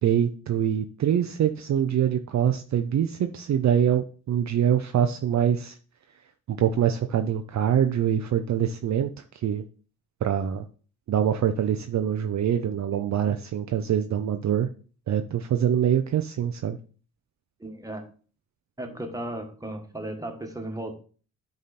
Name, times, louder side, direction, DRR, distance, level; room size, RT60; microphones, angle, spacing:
voice 1, 0.0-5.7 6.5-9.1 9.4-9.6 10.2-10.6 11.1-14.7 15.1-16.8, right 9 dB, 50° right, 7 dB, 0.6 m, -24 dB
voice 2, 17.6-18.1 18.8-20.9, right 1 dB, 10° right, 4 dB, 1.6 m, -35 dB
9.4 x 3.8 x 4.2 m, 0.39 s
cardioid pair, 90°, 36 cm